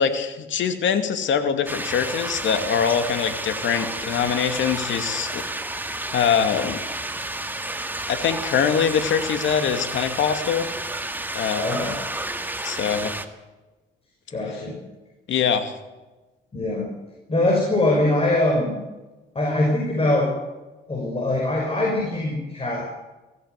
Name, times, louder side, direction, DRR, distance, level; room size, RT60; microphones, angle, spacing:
voice 1, 0.0-5.4 6.1-6.8 8.1-10.7 11.3-11.8 12.6-13.1 15.3-15.7, left 7 dB, 75° left, 8 dB, 2.5 m, -23 dB
sound 1, 1.7-13.3, right 2 dB, 10° right, 1.9 m, -31 dB
voice 2, 11.6-11.9 14.3-14.8 16.5-16.9 17.3-18.8 19.3-20.3 20.9-22.8, left 1 dB, 30° left, 0 dB, 6.0 m, -22 dB
20.5 x 16.0 x 8.3 m, 1.1 s
cardioid pair, 90°, 20 cm